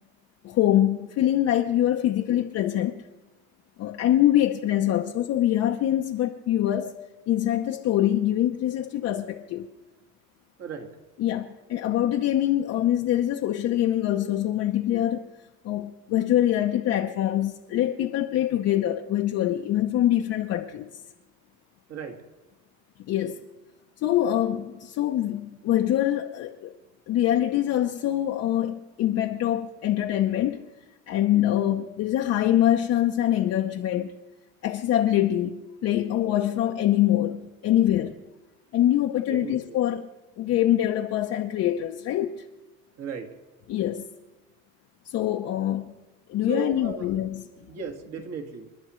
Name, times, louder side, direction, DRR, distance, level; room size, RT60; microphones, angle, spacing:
voice 1, 0.4-3.0 3.8-6.9 7.3-9.7 11.2-15.3 15.6-20.9 23.1-23.4 24.0-26.7 27.1-30.6 31.1-34.2 34.6-38.2 38.7-40.1 40.4-42.4 43.7-44.1 45.0-45.9 46.3-47.4, left 12 dB, 50° left, 0.7 m, -24 dB
voice 2, 10.6-11.0 21.9-22.2 39.2-39.8 43.0-43.4 46.5-47.2 47.7-48.7, right 6 dB, 50° right, 1.9 m, -36 dB
29.0 x 11.0 x 3.1 m
cardioid pair, 145°, 33 cm